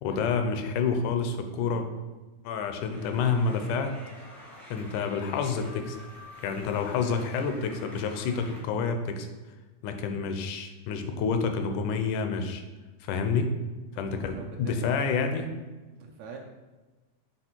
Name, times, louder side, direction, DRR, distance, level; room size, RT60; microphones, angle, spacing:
voice 1, 0.0-1.9 2.5-4.0 4.7-6.0 6.4-9.3 9.8-12.6 13.0-13.5 14.0-15.5, left 5 dB, 80° left, 6 dB, 2.1 m, -28 dB
sound 1, 2.9-8.6, left 1 dB, ahead, 0.5 m, -48 dB
voice 2, 13.9-15.3 15.9-16.4, right 5 dB, 75° right, 0 dB, 1.8 m, -45 dB
7.0 x 3.9 x 4.4 m, 1.2 s
omnidirectional pair, 3.6 m